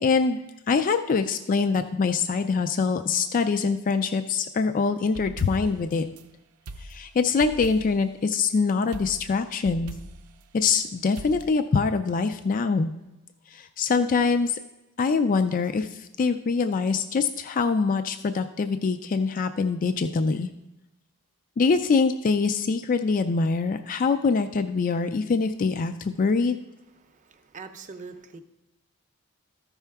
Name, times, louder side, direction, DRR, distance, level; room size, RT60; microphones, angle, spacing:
voice 1, 0.0-6.1 6.8-9.9 10.5-12.9 13.5-14.6 15.0-20.5 21.6-26.6, left 4 dB, 40° left, 8 dB, 0.3 m, -24 dB
sound 1, 5.0-6.3 6.7-8.1 8.9-10.8 11.2-11.5, right 1 dB, 90° right, 0.5 m, -42 dB
voice 2, 27.0-28.4, right 4 dB, 35° right, 7 dB, 0.6 m, -43 dB
13.5 x 5.6 x 3.5 m, 0.98 s
head